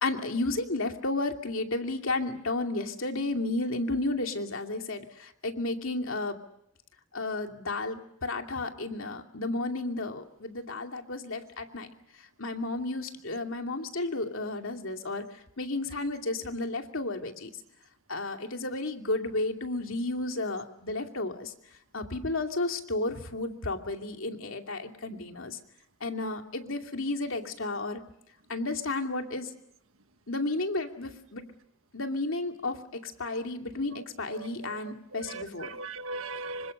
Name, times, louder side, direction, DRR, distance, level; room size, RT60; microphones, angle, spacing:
voice 1, 0.0-6.4 7.1-11.9 12.4-15.2 15.6-17.5 18.1-21.5 21.9-25.6 26.0-28.0 28.5-29.5 30.3-31.5 31.9-35.7, left 2 dB, 75° left, 4 dB, 2.6 m, -32 dB
voice 2, 34.3-34.8 35.1-36.7, right 3 dB, 85° right, 10 dB, 1.4 m, -39 dB
27.0 x 25.5 x 6.7 m, 0.77 s
head